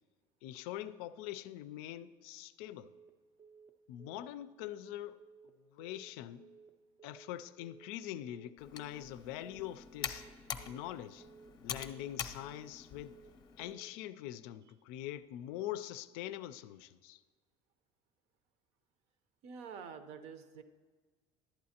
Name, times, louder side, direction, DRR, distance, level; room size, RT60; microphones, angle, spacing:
voice 1, 0.4-2.9 3.9-5.2 5.7-6.4 7.0-10.2 10.7-11.3 11.6-13.2 13.6-17.2, left 13 dB, 85° left, 0.4 m, -43 dB
Telephone, 2.8-3.1 3.4-3.7 4.0-4.3 4.6-4.9 5.2-5.5 5.8-6.1 6.4-6.7 7.0-7.3 7.6-7.9 8.2-8.5 8.8-9.1 9.4-9.7 10.0-10.3 10.6-10.9 11.2-11.5 11.8-12.1 12.4-12.7 13.0-13.3 13.6-13.9, right 5 dB, 20° right, 0.4 m, -58 dB
Computer keyboard, 8.6-13.7, left 8 dB, 35° left, 0.6 m, -45 dB
voice 2, 19.4-20.6, right 6 dB, 65° right, 0.7 m, -47 dB
11.5 x 8.5 x 2.8 m
cardioid pair, 140°, 12 cm